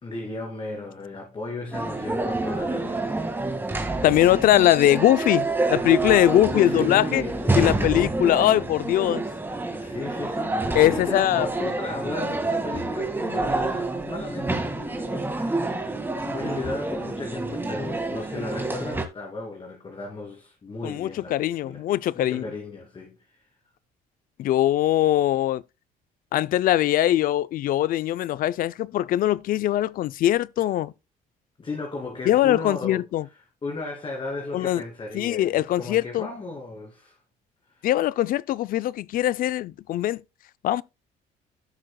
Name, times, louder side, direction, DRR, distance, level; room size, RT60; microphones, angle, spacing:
voice 1, 0.0-3.4 6.5-8.2 9.7-15.9 16.2-21.8 22.1-23.4 30.6-30.7 31.6-33.3 33.6-37.2 37.7-37.9, left 3 dB, 30° left, 2.6 m, -35 dB
sound 1, 1.7-19.1, right 2 dB, 10° right, 1.9 m, -28 dB
voice 2, 4.0-7.2 7.6-9.2 10.7-11.5 20.8-22.5 24.4-25.6 26.3-30.9 32.3-33.2 34.5-34.8 35.1-36.3 37.8-40.2 40.6-40.8, left 13 dB, 55° left, 0.4 m, -21 dB
15.5 x 6.2 x 2.2 m
cardioid pair, 110°, 17 cm